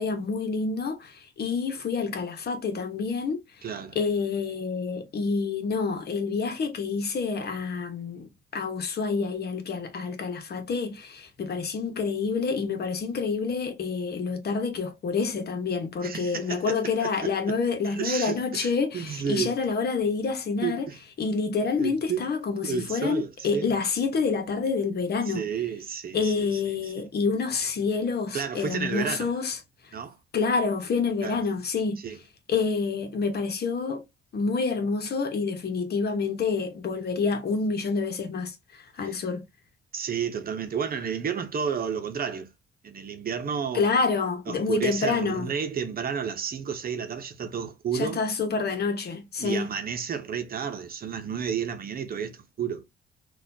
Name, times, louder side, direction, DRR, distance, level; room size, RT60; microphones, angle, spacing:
voice 1, 0.0-3.7 3.9-8.3 8.5-20.9 21.2-25.4 26.1-29.6 30.3-32.0 32.5-34.0 34.3-39.4 43.7-45.5 47.9-49.7, left 4 dB, 55° left, 1.0 m, -28 dB
voice 2, 3.6-4.0 16.0-17.6 17.9-19.5 20.6-21.0 21.8-22.3 22.6-23.7 25.3-27.1 28.3-29.3 29.9-30.2 31.2-31.4 32.0-32.2 39.0-39.1 39.9-42.5 42.8-44.0 44.5-48.2 49.4-52.8, right 7 dB, 50° right, 0.8 m, -31 dB
4.0 x 2.5 x 2.7 m
cardioid pair, 90°, 20 cm